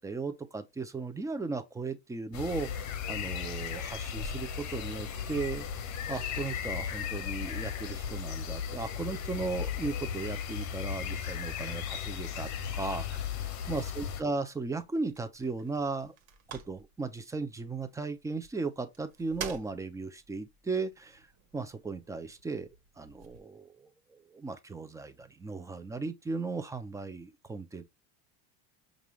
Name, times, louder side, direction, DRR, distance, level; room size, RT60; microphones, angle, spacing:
voice 1, 0.0-5.7 6.1-13.3 13.7-16.1 16.5-21.3 21.5-22.7 23.0-27.8, right 3 dB, 10° right, 0.5 m, -36 dB
sound 1, 2.3-14.2, left 7 dB, 45° left, 0.8 m, -36 dB
sound 2, 14.6-23.4, right 8 dB, 75° right, 1.4 m, -50 dB
5.2 x 2.5 x 3.1 m
supercardioid pair, 125°, 41 cm